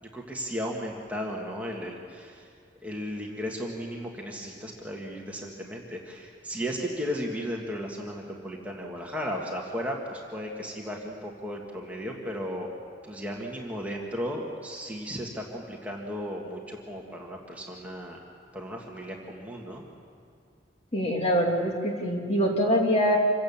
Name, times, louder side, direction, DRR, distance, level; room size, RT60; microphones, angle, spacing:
voice 1, 0.0-2.4 2.8-12.7 13.0-18.2 18.5-19.8, equal, 10° right, -1 dB, 1.8 m, -35 dB
voice 2, 20.9-23.2, equal, 35° left, 0 dB, 2.9 m, -24 dB
27.0 x 16.5 x 7.3 m, 2.3 s
head